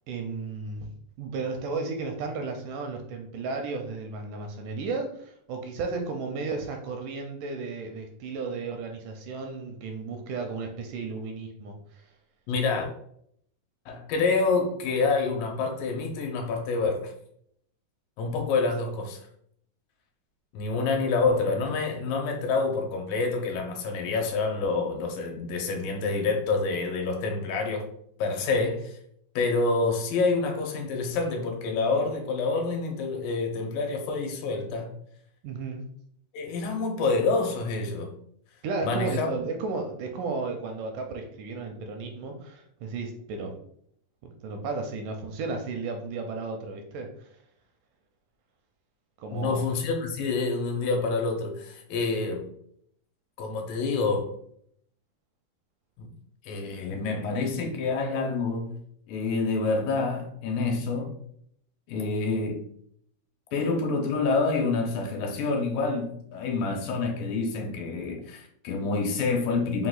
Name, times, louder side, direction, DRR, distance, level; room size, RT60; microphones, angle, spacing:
voice 1, 0.1-0.9 1.2-12.0 35.4-35.9 38.6-43.6 44.2-47.3 49.2-49.6, right 4 dB, 80° right, 2.0 m, -34 dB
voice 2, 12.5-12.9 13.9-17.1 18.2-19.2 20.5-27.9 28.2-29.0 29.4-34.9 36.3-38.1 38.8-39.3 49.3-52.5 53.4-54.3 56.0-56.1 56.4-58.8 59.1-61.2 61.9-62.7 63.5-69.9, left 3 dB, 85° left, 2.5 m, -27 dB
5.6 x 2.4 x 3.9 m
omnidirectional pair, 4.0 m